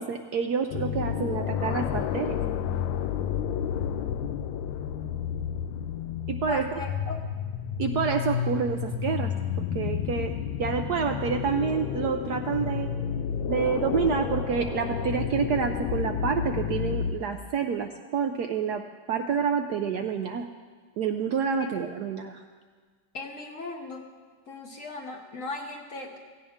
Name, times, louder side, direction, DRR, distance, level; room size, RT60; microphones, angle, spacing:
voice 1, 0.0-2.4 6.3-6.8 7.8-9.3 9.7-12.9 13.5-18.8 19.1-20.4 21.0-22.4, right 6 dB, 70° right, 5 dB, 1.0 m, -28 dB
sound 1, 0.7-17.1, left 8 dB, 75° left, 1.3 m, -30 dB
voice 2, 6.5-7.2 21.6-21.8 23.1-24.0 24.5-26.2, left 3 dB, 50° left, 3 dB, 1.1 m, -37 dB
17.0 x 15.5 x 3.6 m, 1.5 s
omnidirectional pair, 2.3 m